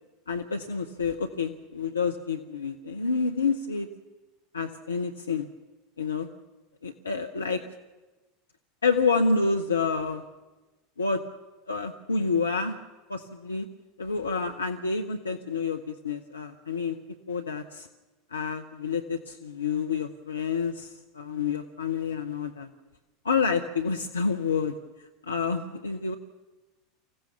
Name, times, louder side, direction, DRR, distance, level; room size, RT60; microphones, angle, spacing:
voice 1, 0.3-3.9 4.5-5.5 6.0-6.3 6.8-7.6 8.8-10.2 11.0-11.2 11.7-12.8 13.1-13.7 14.0-17.0 17.3-17.9 18.3-22.7 23.2-24.7 25.2-26.2, left 4 dB, 75° left, 6 dB, 0.8 m, -28 dB
25.0 x 15.5 x 7.0 m, 1.2 s
figure-of-eight pair, 80°, 0 cm